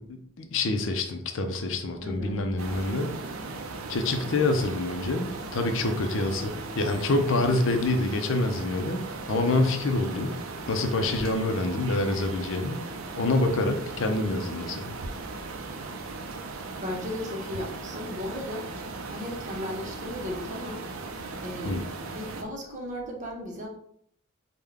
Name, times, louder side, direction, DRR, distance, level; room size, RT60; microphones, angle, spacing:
voice 1, 0.0-3.1 3.9-9.0 9.3-10.3 10.7-12.8 13.1-15.0 21.6-21.9, left 2 dB, 60° left, 6 dB, 0.5 m, -26 dB
voice 2, 2.0-2.4 7.3-7.4 16.8-18.7 19.1-20.8 21.4-21.8 22.0-23.7, left 1 dB, 35° right, 0 dB, 0.7 m, -35 dB
sound 1, 2.6-22.4, right 3 dB, 70° right, 0.4 m, -38 dB
3.5 x 2.2 x 3.4 m, 0.69 s
head